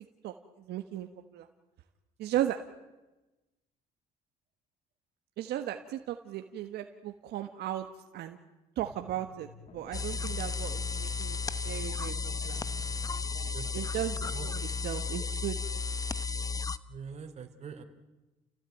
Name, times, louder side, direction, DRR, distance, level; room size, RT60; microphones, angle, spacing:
voice 1, 0.7-1.5 2.2-2.6 5.4-7.8 8.1-8.4 8.7-12.2 12.4-12.6 13.7-15.6, right 12 dB, 75° right, 6 dB, 1.5 m, -36 dB
sound 1, 8.8-14.5, left 5 dB, 40° left, 1.8 m, -52 dB
sound 2, 9.9-16.8, left 4 dB, 20° left, 0.9 m, -34 dB
voice 2, 13.5-14.8 16.9-17.8, right 6 dB, 40° right, 6 dB, 3.4 m, -45 dB
30.0 x 17.0 x 9.3 m, 1.1 s
cardioid pair, 110°, 17 cm